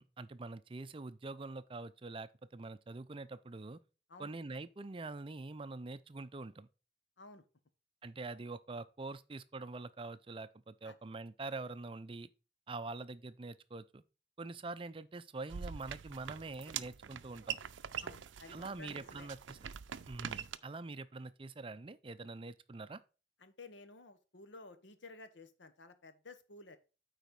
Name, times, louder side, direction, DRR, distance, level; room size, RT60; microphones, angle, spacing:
voice 1, 0.0-3.8 4.2-6.7 8.0-12.3 12.7-14.0 14.4-17.6 18.5-19.6 20.1-23.0, right 3 dB, 30° right, 0.5 m, -45 dB
sound 1, 15.5-20.6, right 8 dB, 85° right, 0.5 m, -44 dB
voice 2, 18.0-19.3 23.4-26.8, left 3 dB, 75° left, 1.0 m, -54 dB
9.2 x 4.2 x 5.2 m
head